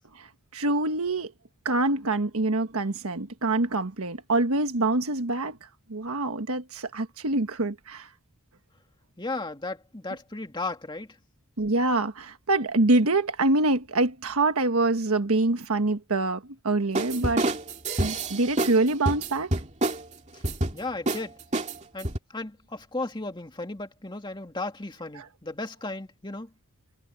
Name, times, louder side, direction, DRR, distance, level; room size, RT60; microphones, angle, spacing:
voice 1, 0.5-1.3 1.6-5.6 5.9-8.1 11.6-17.4 18.0-19.5, right 2 dB, 80° right, 1.4 m, -25 dB
voice 2, 9.2-11.2 20.3-20.4 20.7-21.3 21.9-26.5, left 2 dB, 20° left, 2.2 m, -35 dB
sound 1, 16.9-18.8 19.1-20.0 20.4-20.8 21.1-21.2 21.5-22.2, right 2 dB, 30° right, 2.4 m, -27 dB
head